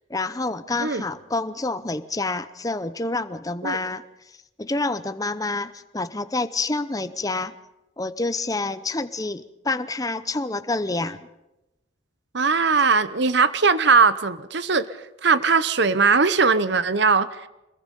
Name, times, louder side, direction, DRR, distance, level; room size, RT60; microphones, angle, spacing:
voice 1, 0.1-4.0 4.6-7.5 8.0-11.3, left 2 dB, 15° left, 12 dB, 0.8 m, -28 dB
voice 2, 12.3-14.9 15.2-17.4, right 4 dB, 55° right, 14 dB, 0.9 m, -19 dB
25.0 x 21.5 x 5.4 m, 0.94 s
head